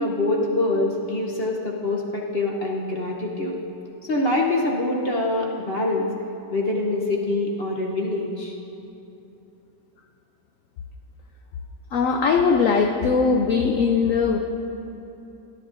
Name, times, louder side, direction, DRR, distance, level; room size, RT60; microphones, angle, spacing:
voice 1, 0.0-3.6 4.0-6.1 6.5-8.5, left 2 dB, 50° left, -1 dB, 0.8 m, -25 dB
voice 2, 11.9-14.4, left 5 dB, 80° left, 4 dB, 0.7 m, -20 dB
17.0 x 10.5 x 2.6 m, 3.0 s
omnidirectional pair, 2.0 m